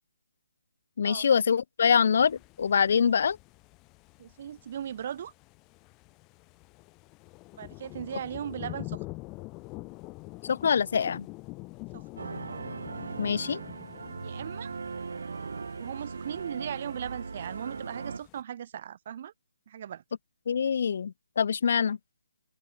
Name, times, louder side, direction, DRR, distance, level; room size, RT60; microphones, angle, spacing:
voice 1, 1.0-3.4 10.4-11.3 13.2-13.6 20.5-22.0, left 7 dB, 50° left, 0.5 m, -24 dB
sound 1, 2.1-18.4, left 24 dB, 20° left, 1.5 m, -46 dB
voice 2, 4.2-5.3 7.5-9.0 11.9-12.0 14.2-14.7 15.8-19.3 19.7-20.0, right 9 dB, 40° right, 1.5 m, -38 dB
sound 2, 12.2-18.2, right 4 dB, 70° right, 0.7 m, -38 dB
open air
hypercardioid pair, 160°, 0 cm